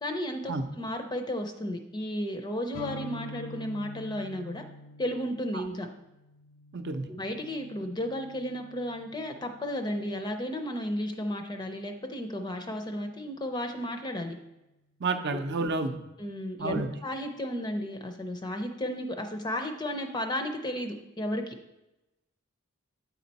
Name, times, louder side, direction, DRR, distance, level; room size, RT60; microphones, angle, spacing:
voice 1, 0.0-4.6 5.0-5.9 7.1-14.4 16.2-21.6, left 1 dB, 20° left, 5 dB, 0.5 m, -33 dB
sound 1, 2.7-10.4, left 1 dB, 80° left, 0.4 m, -46 dB
voice 2, 6.7-7.1 15.0-16.0 16.6-16.9, right 3 dB, 55° right, 7 dB, 0.6 m, -30 dB
8.9 x 4.3 x 4.1 m, 0.96 s
head